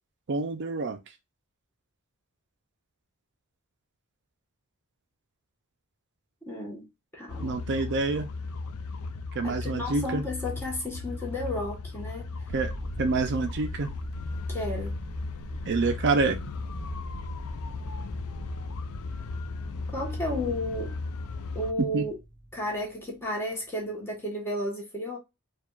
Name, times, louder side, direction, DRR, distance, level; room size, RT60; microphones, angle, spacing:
voice 1, 0.3-1.0 7.4-8.3 9.3-10.2 12.5-12.7 13.0-13.9 15.6-16.4 21.9-22.1, right 3 dB, 50° right, 0.5 m, -27 dB
voice 2, 6.5-7.6 9.4-12.3 14.5-14.9 19.9-21.0 21.5-22.2 22.5-25.2, left 1 dB, 10° left, 1.1 m, -33 dB
sound 1, 7.3-21.7, left 3 dB, 70° left, 0.4 m, -36 dB
sound 2, 12.5-23.9, right 1 dB, 30° left, 1.3 m, -42 dB
4.6 x 2.3 x 2.3 m
head